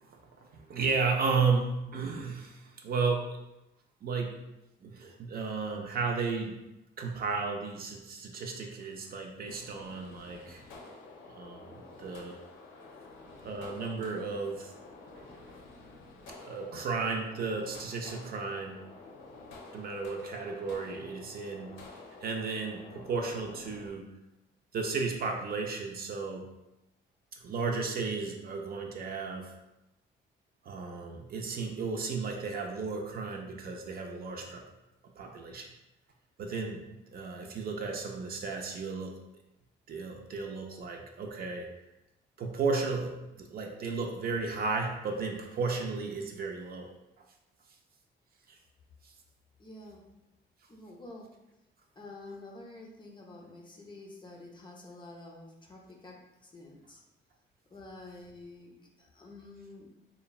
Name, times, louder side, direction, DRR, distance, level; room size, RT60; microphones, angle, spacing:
voice 1, 0.1-3.3 4.0-4.3 4.8-6.6 7.0-10.6 11.4-12.4 13.4-14.7 16.5-18.9 19.7-21.8 22.2-24.1 24.7-26.5 27.3-29.5 30.6-34.6 35.2-35.7 36.4-39.2 39.9-41.7 42.4-46.9 48.5-48.6, right 4 dB, 50° right, 2 dB, 0.4 m, -34 dB
sound 1, 9.5-23.9, left 3 dB, 90° left, 0.5 m, -50 dB
voice 2, 49.6-50.1 50.7-51.3 52.0-57.0 57.7-59.9, left 2 dB, 25° left, 0 dB, 0.5 m, -49 dB
3.0 x 2.1 x 2.3 m, 0.94 s
cardioid pair, 90°, 20 cm